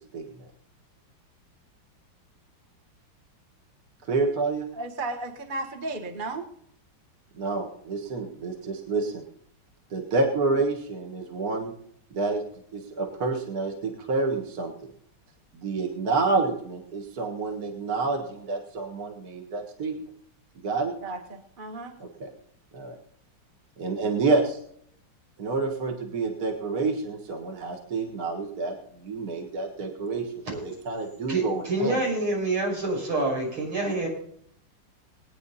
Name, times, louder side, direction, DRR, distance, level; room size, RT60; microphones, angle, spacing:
voice 1, 4.1-4.6 7.4-9.2 9.9-11.7 12.1-12.4 12.7-14.7 15.5-20.0 20.6-20.9 22.0-22.3 22.7-22.9 23.8-24.6 25.4-32.0, right 3 dB, 50° right, 2 dB, 2.0 m, -28 dB
voice 2, 4.8-6.5 10.5-10.6 21.0-21.9, right 2 dB, 25° right, 5 dB, 1.4 m, -34 dB
voice 3, 31.3-34.1, right 2 dB, 80° right, -2 dB, 7.0 m, -27 dB
21.0 x 9.7 x 4.2 m, 0.67 s
omnidirectional pair, 2.3 m